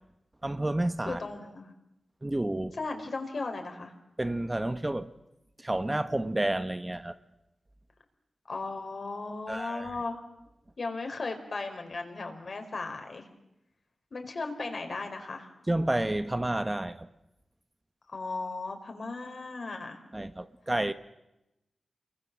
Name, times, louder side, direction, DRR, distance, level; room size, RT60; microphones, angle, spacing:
voice 1, 0.4-1.2 2.2-2.7 4.2-5.1 5.6-7.2 9.5-9.9 15.7-17.1 20.1-20.9, right 1 dB, 15° right, 9 dB, 1.1 m, -30 dB
voice 2, 1.1-1.7 2.7-3.9 8.5-10.2 10.8-13.3 14.1-15.5 18.1-20.0, left 3 dB, 55° left, 5 dB, 4.5 m, -36 dB
29.5 x 22.5 x 7.5 m, 0.90 s
wide cardioid pair, 95°, 0 cm